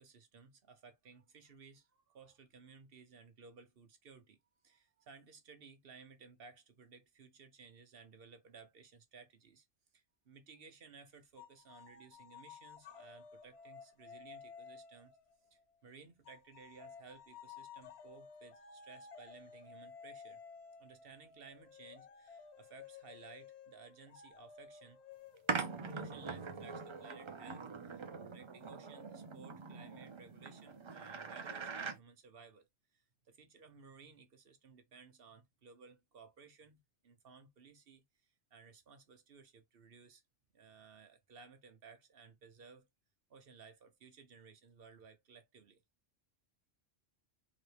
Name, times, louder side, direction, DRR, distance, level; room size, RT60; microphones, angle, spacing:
voice 1, 0.0-4.4 4.6-9.7 9.9-15.1 15.5-20.4 20.8-25.0 25.9-40.2 40.5-42.9 43.3-45.8, right 5 dB, 60° right, 1.0 m, -58 dB
sound 1, 11.4-15.7 16.2-27.6, left 6 dB, 70° left, 0.9 m, -55 dB
sound 2, 25.5-32.0, right 5 dB, 40° right, 0.4 m, -42 dB
3.8 x 2.9 x 3.3 m
omnidirectional pair, 1.2 m